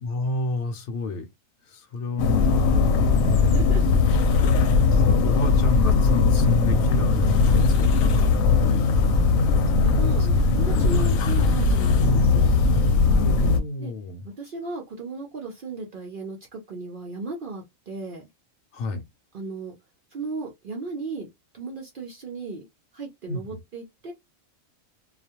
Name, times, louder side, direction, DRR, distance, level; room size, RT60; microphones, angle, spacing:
voice 1, 0.0-1.3 1.7-4.0 4.9-8.7 10.1-10.5 10.9-11.1 13.2-14.3 18.7-19.0 23.3-23.6, left 3 dB, 65° left, 0.8 m, -31 dB
sound 1, 2.2-13.6, left 4 dB, 90° left, 1.0 m, -19 dB
voice 2, 3.4-3.8 4.4-4.6 9.3-9.4 9.7-12.6 13.8-13.9 14.2-18.2 19.3-19.7 20.1-21.3 21.5-22.7 22.9-24.1, right 3 dB, 55° right, 0.6 m, -36 dB
2.4 x 2.2 x 2.7 m
omnidirectional pair, 1.4 m